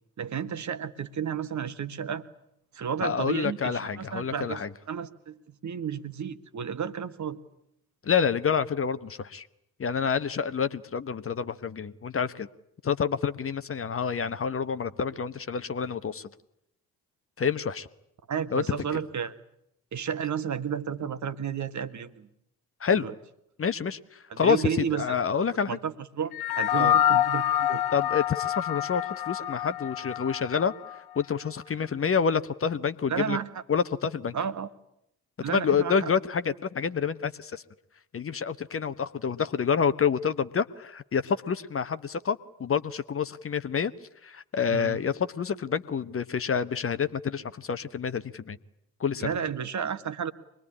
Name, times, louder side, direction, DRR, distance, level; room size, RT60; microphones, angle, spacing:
voice 1, 0.2-2.2 2.7-7.4 18.3-19.3 19.9-22.3 23.0-23.1 24.3-25.2 25.7-27.8 33.1-33.6 34.3-34.7 35.4-36.1 44.7-45.0 49.2-50.3, right 7 dB, 40° right, 11 dB, 1.5 m, -32 dB
voice 2, 3.0-4.7 8.0-9.5 9.8-12.5 12.8-16.3 17.4-17.9 18.5-19.0 22.8-23.1 23.6-25.8 26.8-26.9 27.9-30.7 31.1-33.4 33.7-34.3 35.5-37.6 38.1-43.9 44.2-48.6 49.0-49.3, left 6 dB, 30° left, 12 dB, 1.0 m, -28 dB
sound 1, 26.3-31.0, left 11 dB, 55° left, 1.0 m, -27 dB
24.5 x 20.5 x 9.9 m, 0.79 s
figure-of-eight pair, 45°, 46 cm